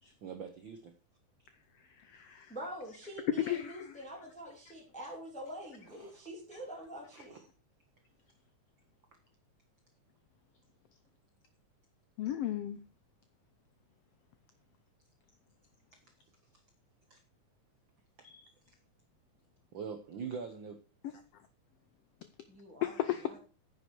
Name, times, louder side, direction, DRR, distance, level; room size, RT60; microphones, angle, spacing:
voice 1, 0.0-0.9 6.0-6.1 7.1-7.4 17.1-17.2 18.2-18.3 19.7-20.7, right 6 dB, 80° right, 6 dB, 1.1 m, -43 dB
voice 2, 2.0-2.5 3.5-3.7 12.2-12.8 18.2-18.5 22.8-23.4, left 12 dB, 85° left, 11 dB, 1.3 m, -35 dB
voice 3, 2.5-7.4 22.5-23.4, equal, ahead, -2 dB, 2.7 m, -45 dB
9.6 x 7.9 x 4.6 m, 0.36 s
omnidirectional pair, 3.5 m